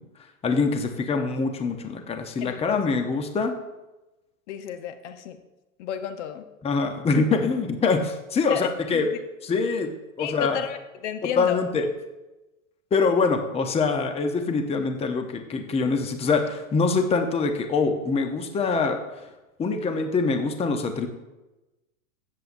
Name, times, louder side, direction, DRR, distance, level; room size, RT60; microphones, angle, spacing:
voice 1, 0.4-3.5 6.6-9.1 9.4-9.9 10.2-10.6 11.4-11.9 12.9-19.0 19.6-21.1, left 4 dB, 15° left, 5 dB, 0.8 m, -24 dB
voice 2, 2.4-2.8 4.5-5.4 5.8-6.4 8.5-9.2 10.2-11.6, left 9 dB, 55° left, 8 dB, 0.9 m, -32 dB
15.5 x 7.7 x 2.6 m, 1.0 s
hypercardioid pair, 105°, 42 cm